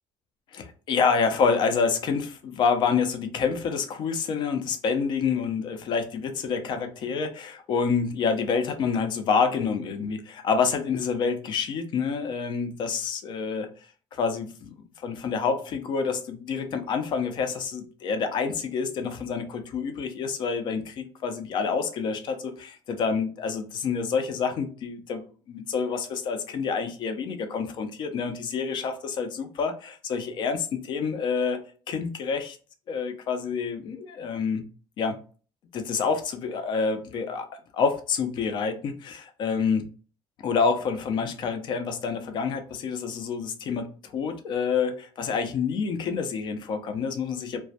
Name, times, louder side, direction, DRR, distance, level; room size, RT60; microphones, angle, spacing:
voice 1, 0.5-13.7 14.1-14.7 15.0-25.2 25.5-31.6 31.9-32.6 32.9-34.6 35.0-35.2 35.7-37.5 37.7-39.9 40.4-47.6, left 5 dB, 50° left, 7 dB, 0.5 m, -27 dB
2.2 x 2.1 x 2.6 m, 0.39 s
cardioid pair, 130°, 10 cm